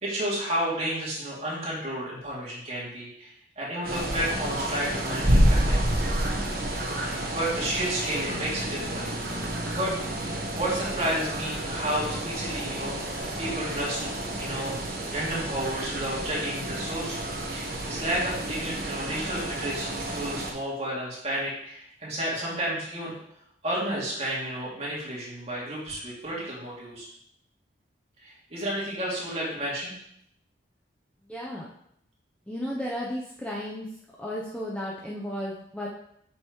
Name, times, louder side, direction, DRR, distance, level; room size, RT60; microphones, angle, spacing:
voice 1, 0.0-5.8 7.0-9.9 10.6-14.1 14.4-17.2 17.5-23.1 23.6-27.1 28.2-29.9, right 1 dB, 35° right, -6 dB, 2.6 m, -32 dB
sound 1, 3.8-20.5, right 1 dB, 50° right, 1.3 m, -29 dB
voice 2, 31.2-31.7 32.5-33.9 34.2-35.9, equal, 5° left, -4 dB, 0.6 m, -34 dB
7.8 x 5.6 x 3.1 m, 0.73 s
head